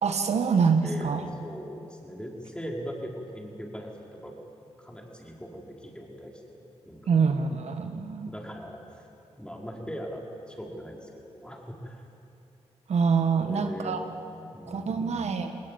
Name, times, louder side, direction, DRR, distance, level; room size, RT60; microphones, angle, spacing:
voice 1, 0.0-1.2 7.1-8.3 12.9-14.0 14.7-15.5, right 5 dB, 70° right, 7 dB, 1.5 m, -25 dB
voice 2, 0.8-4.4 4.8-6.6 6.9-7.6 8.3-9.0 9.4-12.1 13.5-14.0 14.3-15.3, equal, 10° left, -1 dB, 5.2 m, -40 dB
20.0 x 19.0 x 8.8 m, 2.6 s
cardioid pair, 55°, 12 cm